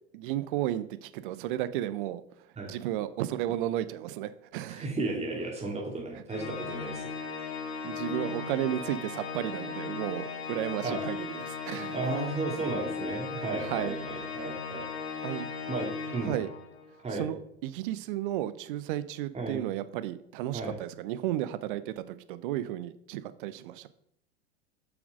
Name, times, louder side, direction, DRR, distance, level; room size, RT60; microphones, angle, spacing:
voice 1, 0.1-2.2 2.7-4.9 7.8-12.0 13.6-14.0 15.2-15.5 16.3-16.5 17.1-23.9, right 13 dB, 50° right, 13 dB, 0.7 m, -33 dB
voice 2, 4.7-7.1 10.8-11.0 11.9-16.4 17.0-17.3 19.3-19.6 20.5-20.8, right 3 dB, 20° right, 0 dB, 2.8 m, -34 dB
Organ, 6.3-16.9, left 5 dB, 65° left, 1.2 m, -37 dB
8.0 x 6.0 x 5.2 m, 0.73 s
figure-of-eight pair, 85°, 33 cm